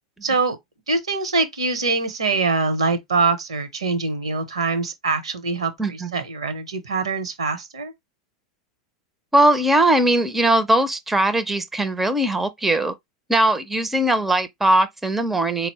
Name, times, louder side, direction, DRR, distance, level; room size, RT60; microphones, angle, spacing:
voice 1, 0.2-0.6 0.9-7.9, right 4 dB, 75° right, 0.8 m, -24 dB
voice 2, 5.8-6.1 9.3-12.9 13.3-15.7, right 1 dB, 5° right, 0.5 m, -20 dB
4.2 x 2.0 x 4.1 m
figure-of-eight pair, 85°, 3 cm